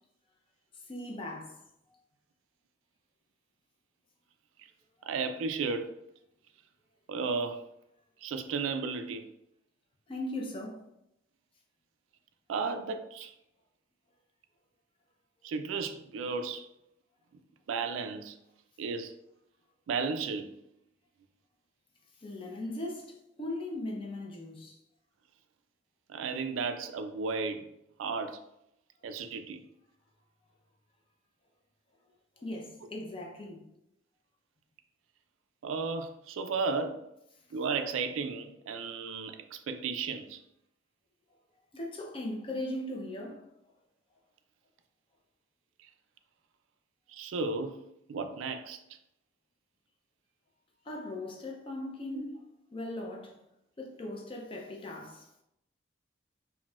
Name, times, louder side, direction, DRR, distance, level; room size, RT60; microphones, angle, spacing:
voice 1, 0.9-1.6 10.1-10.8 22.2-24.8 32.4-33.6 41.7-43.5 50.9-52.3 52.7-53.4 53.8-55.3, left 1 dB, 25° left, 0.5 m, -39 dB
voice 2, 5.1-5.9 7.1-7.6 8.2-9.2 12.5-13.3 15.4-16.7 17.7-18.4 18.8-19.1 19.9-20.5 26.1-27.7 28.0-28.4 29.0-29.6 35.6-37.0 37.5-40.4 47.1-47.8 48.1-48.8 52.1-52.2, right 4 dB, 85° right, 0.3 m, -34 dB
3.9 x 2.1 x 2.3 m
head